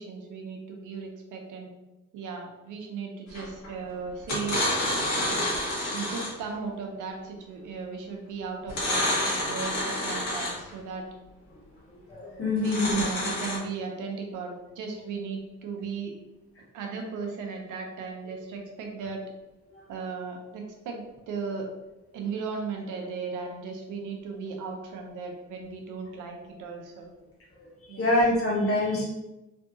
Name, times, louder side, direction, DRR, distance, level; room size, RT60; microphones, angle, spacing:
voice 1, 0.0-1.7 2.1-4.6 5.3-5.4 5.9-11.0 12.5-16.1 16.7-19.2 19.9-21.7 22.1-27.1 27.9-28.1, right 5 dB, 85° right, 2 dB, 0.7 m, -36 dB
sound 1, 3.3-3.7 4.2-6.5 8.7-10.7 12.6-13.6, left 1 dB, 70° left, 1.5 m, -28 dB
voice 2, 12.1-12.9 19.7-19.8 27.6-29.0, left 2 dB, 50° left, -5 dB, 1.4 m, -26 dB
3.4 x 2.7 x 2.7 m, 1.0 s
cardioid pair, 90°, 30 cm